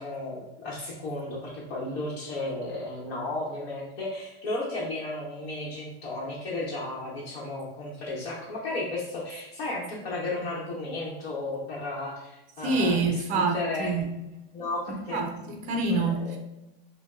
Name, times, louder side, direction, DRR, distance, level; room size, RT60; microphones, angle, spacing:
voice 1, 0.0-13.9 14.5-15.2 15.9-16.3, left 2 dB, 70° left, -5 dB, 1.0 m, -34 dB
voice 2, 12.6-14.1 14.9-16.4, right 3 dB, 25° right, 4 dB, 0.5 m, -27 dB
5.2 x 2.2 x 2.4 m, 0.93 s
supercardioid pair, 150°, 31 cm